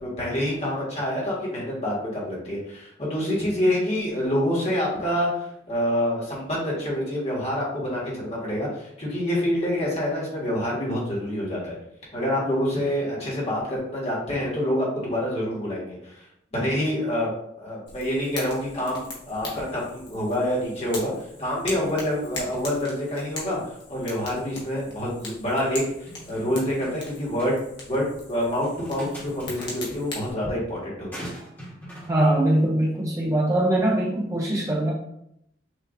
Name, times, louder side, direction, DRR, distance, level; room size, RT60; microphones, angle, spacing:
voice 1, 0.0-5.3 5.7-11.8 12.1-16.2 16.5-17.3 17.6-21.1 21.4-23.6 23.9-27.6 27.9-31.3, equal, 35° left, -5 dB, 1.7 m, -27 dB
Fire, 17.9-30.3, left 2 dB, 70° left, 1.4 m, -40 dB
sound 1, 26.1-27.1 27.4-27.5 28.6-29.7 31.1-32.1, equal, 10° left, 1.4 m, -41 dB
voice 2, 32.1-34.9, right 1 dB, 15° right, -3 dB, 0.5 m, -22 dB
6.5 x 2.8 x 2.6 m, 0.77 s
head